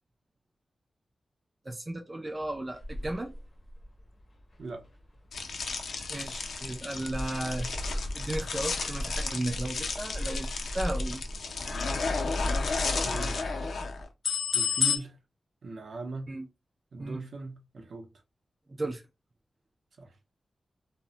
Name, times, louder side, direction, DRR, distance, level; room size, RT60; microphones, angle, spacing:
voice 1, 1.7-3.3 6.1-7.7 8.1-10.5 10.7-11.2 16.3-16.5 17.0-17.2 18.7-19.0, right 1 dB, 20° right, 0.3 m, -35 dB
sound 1, 2.5-14.0, equal, 30° left, 0.5 m, -39 dB
sound 2, 5.3-15.0, left 5 dB, 85° left, 0.4 m, -32 dB
voice 2, 13.0-13.4 14.5-15.2 15.6-16.3 16.9-18.1 20.0-20.2, right 3 dB, 70° right, 0.6 m, -39 dB
2.1 x 2.0 x 3.7 m
wide cardioid pair, 165°, 0 cm